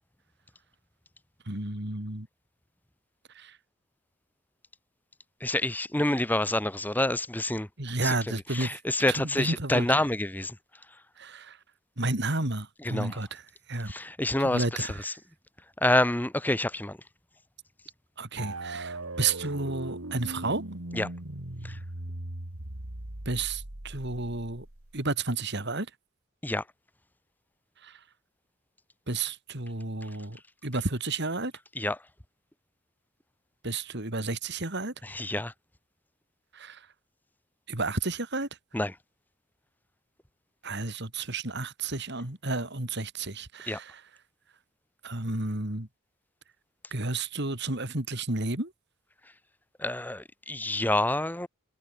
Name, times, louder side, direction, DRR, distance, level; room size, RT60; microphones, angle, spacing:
voice 1, 1.5-2.3 3.3-3.6 7.8-8.7 9.1-9.9 11.2-11.6 12.0-13.4 13.7-13.9 14.4-15.2 18.2-20.6 23.2-24.7 24.9-25.9 27.8-28.0 29.1-30.4 30.6-31.5 33.6-34.9 36.5-36.9 37.7-38.5 40.6-43.9 45.0-45.9 46.9-48.7, right 3 dB, 50° right, 3.0 m, -31 dB
voice 2, 5.4-7.7 8.0-8.2 8.5-10.6 12.8-13.2 13.9-15.1 15.8-17.0 20.9-21.1 21.6-21.8 26.4-26.6 31.8-32.0 35.0-35.5 38.7-38.9 43.7-43.8 49.8-51.5, left 1 dB, 10° left, 0.9 m, -27 dB
sound 1, 18.4-25.0, right 2 dB, 75° right, 2.6 m, -39 dB
head